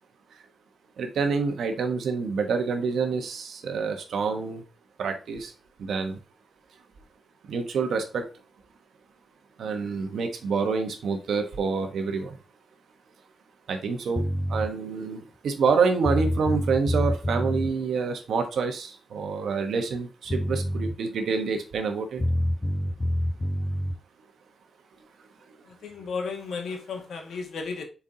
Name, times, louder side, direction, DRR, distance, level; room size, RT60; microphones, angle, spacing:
voice 1, 1.0-4.6 5.0-5.5 5.8-6.2 7.5-8.2 9.6-12.3 13.7-14.2 14.5-22.2, right 5 dB, 75° right, 5 dB, 1.1 m, -27 dB
sound 1, 14.2-14.7 15.7-15.8 16.0-17.7 19.9-20.0 20.3-21.0 22.2-24.0, equal, 15° left, 0.5 m, -27 dB
voice 2, 25.8-27.8, left 5 dB, 90° left, 3 dB, 1.8 m, -34 dB
7.5 x 4.6 x 2.8 m, 0.34 s
wide cardioid pair, 165°, 0 cm